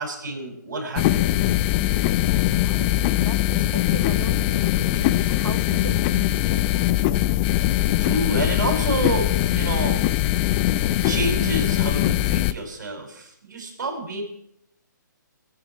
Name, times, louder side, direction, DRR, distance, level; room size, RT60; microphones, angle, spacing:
voice 1, 0.0-1.6 8.0-10.0 11.0-14.2, right 2 dB, 65° right, 2 dB, 6.5 m, -29 dB
sound 1, 1.0-12.5, left 14 dB, 30° left, 0.6 m, -21 dB
voice 2, 2.5-6.8, right 3 dB, 85° right, 9 dB, 1.8 m, -38 dB
25.0 x 10.5 x 4.6 m, 0.71 s
figure-of-eight pair, 135°, 11 cm